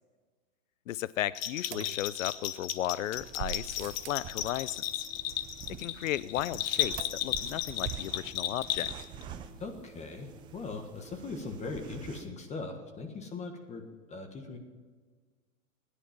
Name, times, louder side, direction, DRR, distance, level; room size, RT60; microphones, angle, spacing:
voice 1, 0.9-5.1 5.8-8.9, left 13 dB, 70° left, 19 dB, 0.5 m, -35 dB
Bell, 1.3-9.2, left 12 dB, 45° left, 1.2 m, -34 dB
sound 1, 1.7-2.7 3.4-4.3 7.0-7.6 7.9-8.0 8.2-8.3, right 11 dB, 55° right, 0.9 m, -43 dB
sound 2, 3.1-12.3, right 8 dB, 10° right, 0.4 m, -47 dB
voice 2, 9.6-13.8 14.1-14.6, left 3 dB, 15° left, 5 dB, 1.4 m, -40 dB
21.0 x 10.0 x 5.9 m, 1.5 s
hypercardioid pair, 140°, 41 cm